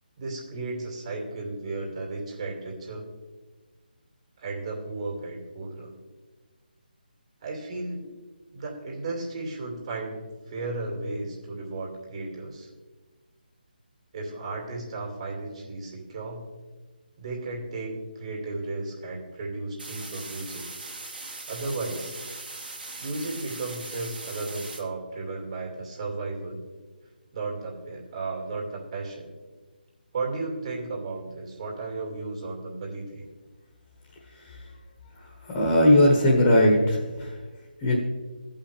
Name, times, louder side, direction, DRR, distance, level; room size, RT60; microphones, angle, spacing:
voice 1, 0.2-3.1 4.4-5.9 7.4-8.0 8.5-12.7 14.1-16.5 17.2-20.7 21.5-22.2 23.0-26.6 27.3-29.3 30.1-33.2, right 3 dB, 40° right, -1 dB, 2.5 m, -34 dB
sound 1, 19.8-24.8, right 3 dB, 70° right, 2.0 m, -40 dB
voice 2, 35.5-37.3 37.8-38.0, left 1 dB, 20° left, -4 dB, 1.4 m, -19 dB
16.0 x 5.5 x 3.4 m, 1.3 s
figure-of-eight pair, 155°, 5 cm